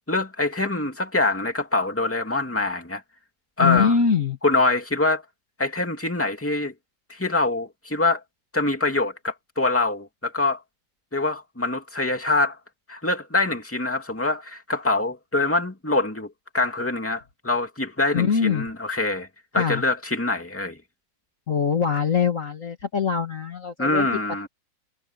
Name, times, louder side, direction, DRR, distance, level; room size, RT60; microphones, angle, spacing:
voice 1, 0.1-3.0 3.6-3.9 4.4-5.2 5.6-6.7 7.1-8.2 8.5-10.6 11.1-12.6 12.9-19.3 19.5-20.8 23.8-24.5, left 2 dB, 5° left, 2.4 m, -24 dB
voice 2, 3.6-4.4 18.1-18.7 19.6-19.8 21.5-24.1, left 6 dB, 45° left, 2.0 m, -23 dB
omnidirectional pair, 2.0 m